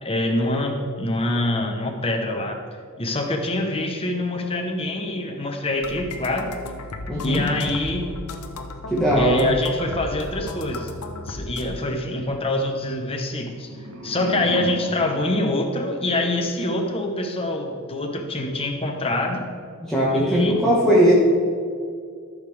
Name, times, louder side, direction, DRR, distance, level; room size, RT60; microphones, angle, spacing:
voice 1, 0.0-2.6 3.0-6.5 7.2-8.2 9.2-10.9 11.3-13.7 14.0-19.5 20.2-20.6, left 1 dB, 25° left, 3 dB, 1.0 m, -25 dB
sound 1, 5.8-11.6, left 2 dB, 90° left, 0.9 m, -35 dB
voice 2, 7.1-7.5 8.9-9.5 19.8-21.1, equal, ahead, -8 dB, 1.4 m, -19 dB
sound 2, 13.3-16.4, right 1 dB, 70° right, 1.1 m, -36 dB
13.5 x 6.6 x 3.5 m, 2.2 s
head